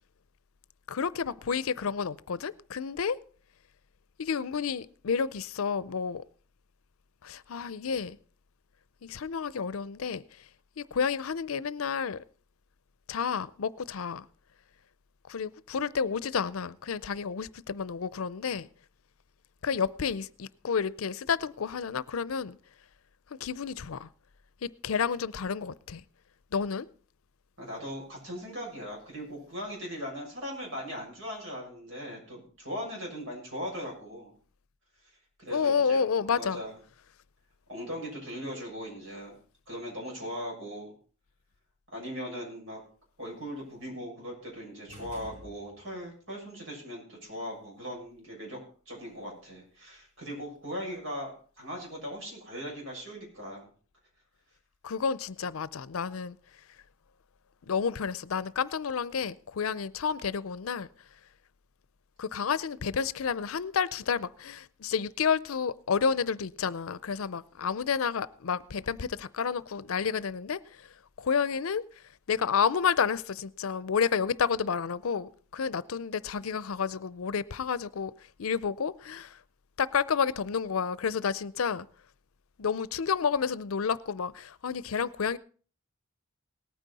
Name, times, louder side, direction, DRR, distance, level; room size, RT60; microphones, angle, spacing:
voice 1, 0.9-3.2 4.2-6.2 7.2-8.2 9.0-10.4 10.8-12.2 13.1-14.3 15.3-18.7 19.6-22.6 23.3-24.1 24.6-26.0 26.5-26.9 35.5-36.6 54.8-56.4 57.6-60.9 62.2-71.8 72.3-78.1 78.4-79.4 79.8-81.9 82.6-85.4, left 6 dB, 85° left, 0.5 m, -30 dB
voice 2, 27.6-34.3 35.0-35.1 35.4-36.0 36.3-36.7 37.7-39.4 39.7-40.9 41.9-42.8 43.2-48.6 48.8-51.3 51.6-53.7, equal, 65° right, 6.7 m, -39 dB
sound 1, 44.9-46.1, equal, 35° right, 3.9 m, -48 dB
18.5 x 9.2 x 4.1 m
head